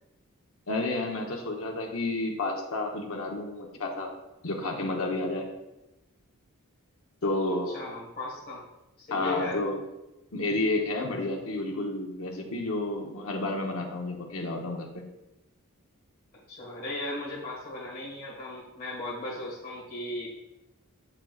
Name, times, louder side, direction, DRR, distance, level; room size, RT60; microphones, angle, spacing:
voice 1, 0.7-4.1 4.4-5.5 7.2-7.8 9.1-9.8 10.3-15.0, left 2 dB, 70° left, 1 dB, 1.0 m, -30 dB
voice 2, 7.7-8.6 9.0-9.6 16.5-20.3, left 2 dB, 45° left, -6 dB, 1.7 m, -36 dB
7.3 x 6.7 x 2.4 m, 0.95 s
head